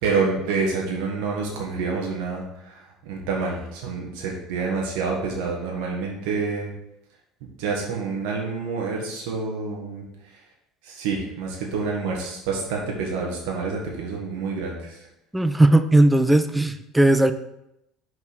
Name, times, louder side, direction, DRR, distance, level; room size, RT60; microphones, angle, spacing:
voice 1, 0.0-6.7 7.6-10.4 10.8-15.1, right 4 dB, 75° right, -2 dB, 1.6 m, -28 dB
voice 2, 15.3-17.3, right 1 dB, 5° right, 10 dB, 0.6 m, -17 dB
5.4 x 4.8 x 6.1 m, 0.84 s
hypercardioid pair, 85°, 0 cm